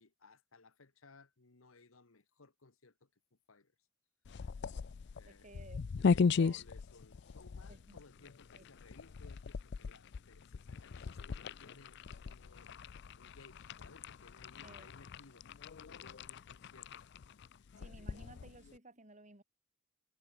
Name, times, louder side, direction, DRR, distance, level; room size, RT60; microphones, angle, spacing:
voice 1, 0.0-3.1 3.5-3.7 5.1-5.5 6.1-15.5 15.9-17.1, left 3 dB, 75° left, 1.5 m, -61 dB
sound 1, 4.2-18.8, left 5 dB, 55° left, 0.4 m, -38 dB
voice 2, 5.3-6.6 7.7-8.7 14.6-14.9 17.8-19.4, right 2 dB, 35° right, 4.0 m, -57 dB
head